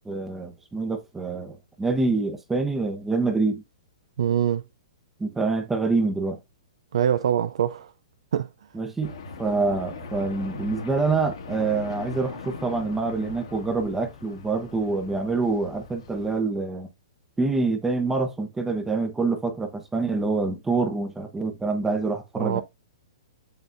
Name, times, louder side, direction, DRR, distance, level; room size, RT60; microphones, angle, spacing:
voice 1, 0.0-3.6 5.2-6.4 8.7-9.1 9.4-16.9 17.4-22.6, right 3 dB, 10° right, 0.8 m, -26 dB
voice 2, 4.2-4.6 6.9-7.9 8.3-8.5 22.4-22.6, right 9 dB, 75° right, 0.4 m, -24 dB
sound 1, 9.0-16.4, left 4 dB, 75° left, 2.2 m, -40 dB
6.8 x 5.8 x 2.6 m
hypercardioid pair, 140°, 3 cm